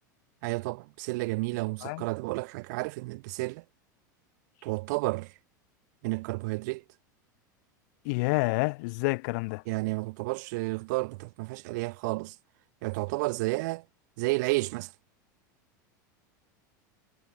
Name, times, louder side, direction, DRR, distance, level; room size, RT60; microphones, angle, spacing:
voice 1, 0.4-3.6 4.6-5.3 6.0-6.8 9.7-12.4 12.8-13.8 14.2-14.9, right 24 dB, 65° right, 3.9 m, -31 dB
voice 2, 8.0-9.6, left 28 dB, 65° left, 1.4 m, -28 dB
hypercardioid pair, 95°, 10 cm